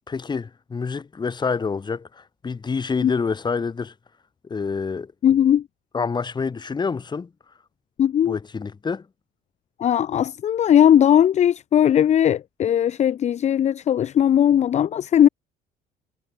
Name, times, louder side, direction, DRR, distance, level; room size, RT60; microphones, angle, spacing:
voice 1, 0.1-3.9 4.5-5.1 5.9-7.3 8.3-9.1, left 5 dB, 25° left, 1.9 m, -27 dB
voice 2, 5.2-5.6 8.0-8.4 9.8-15.3, left 10 dB, 40° left, 0.6 m, -18 dB
cardioid pair, 110°, 17 cm